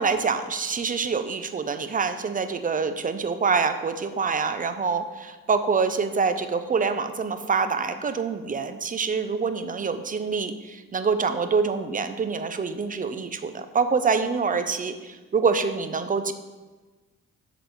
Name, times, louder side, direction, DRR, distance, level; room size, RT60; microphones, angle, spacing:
voice 1, 0.0-16.3, right 5 dB, 25° right, 9 dB, 0.7 m, -26 dB
7.9 x 4.1 x 6.8 m, 1.2 s
cardioid pair, 90°, 30 cm